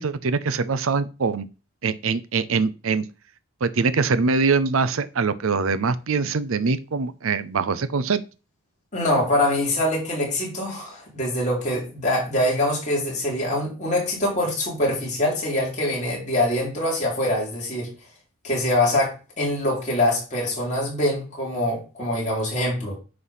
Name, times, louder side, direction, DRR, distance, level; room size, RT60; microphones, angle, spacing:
voice 1, 0.0-1.5 1.8-3.1 3.6-8.2, right 4 dB, 70° right, 0.6 m, -23 dB
voice 2, 8.9-17.9 18.4-22.9, left 1 dB, 30° left, 3.3 m, -24 dB
9.6 x 3.3 x 5.7 m
head